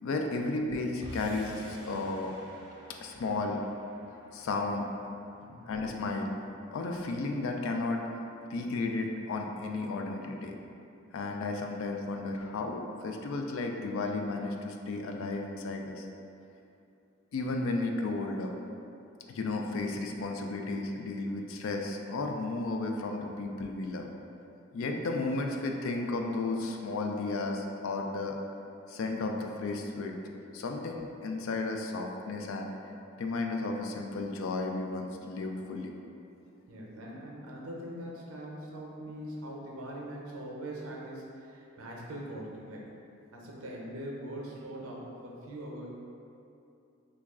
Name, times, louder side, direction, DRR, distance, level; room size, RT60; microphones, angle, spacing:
voice 1, 0.0-2.3 3.0-3.6 4.3-4.9 5.7-6.3 6.7-8.0 8.5-10.6 11.1-16.1 17.3-18.5 19.3-24.1 24.7-28.4 28.9-30.2 30.5-32.9 33.2-35.9, left 3 dB, 70° left, 3 dB, 0.3 m, -33 dB
sound 1, 1.0-7.4, equal, 20° right, 0.5 m, -51 dB
voice 2, 36.7-42.9 43.3-45.9, right 1 dB, 80° right, -2 dB, 0.6 m, -42 dB
3.0 x 2.3 x 3.5 m, 2.7 s
head